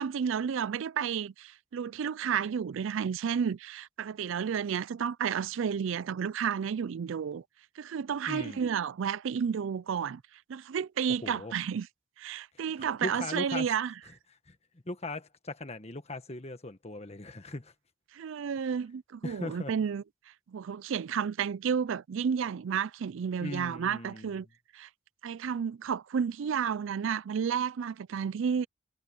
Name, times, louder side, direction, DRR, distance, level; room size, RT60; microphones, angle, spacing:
voice 1, 0.0-7.4 7.8-11.9 12.2-13.9 18.1-24.5 24.7-24.9 25.2-28.7, right 7 dB, 65° right, 0.4 m, -31 dB
voice 2, 8.3-8.6 11.2-11.5 12.5-12.6 13.0-13.7 14.5-14.6 14.8-17.7 19.2-19.7 23.4-24.3, left 2 dB, 30° left, 1.4 m, -39 dB
head